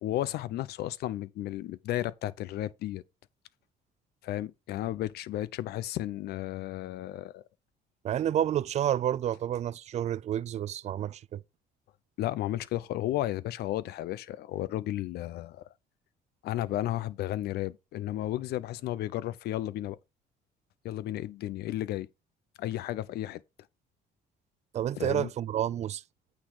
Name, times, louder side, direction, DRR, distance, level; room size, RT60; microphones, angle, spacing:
voice 1, 0.0-3.0 4.2-7.4 12.2-15.6 16.4-20.0 20.8-22.1 22.6-23.4 25.0-25.3, left 14 dB, 70° left, 0.6 m, -33 dB
voice 2, 8.0-11.4 24.7-26.0, right 11 dB, 40° right, 0.4 m, -29 dB
8.8 x 4.1 x 5.6 m
cardioid pair, 110°, 17 cm